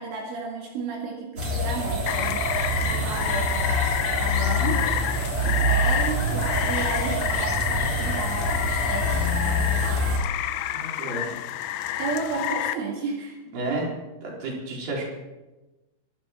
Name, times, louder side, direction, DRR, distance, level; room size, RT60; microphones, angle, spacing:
voice 1, 0.0-4.9 5.4-9.3 12.0-13.4, right 4 dB, 75° right, -2 dB, 4.5 m, -33 dB
sound 1, 1.4-10.2, equal, 30° right, 3.8 m, -26 dB
Rain, 2.1-12.7, left 12 dB, 85° left, 3.2 m, -29 dB
voice 2, 10.7-11.3 13.5-13.9 14.2-15.0, right 2 dB, 45° right, -3 dB, 5.6 m, -31 dB
25.0 x 11.5 x 4.5 m, 1.1 s
omnidirectional pair, 5.8 m